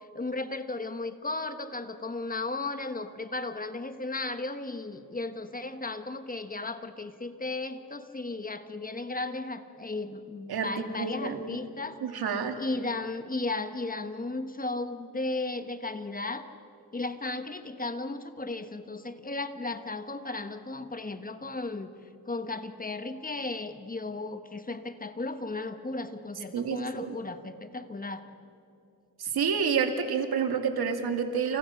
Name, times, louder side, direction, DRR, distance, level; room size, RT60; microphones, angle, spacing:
voice 1, 0.0-12.0 12.6-16.5 16.9-21.9 22.3-28.2, left 2 dB, 25° left, 9 dB, 1.3 m, -35 dB
voice 2, 11.0-11.6 12.0-12.6 26.5-27.1 29.2-31.6, right 6 dB, 80° right, 6 dB, 2.5 m, -29 dB
29.5 x 29.5 x 5.9 m, 2.6 s
wide cardioid pair, 125°, 37 cm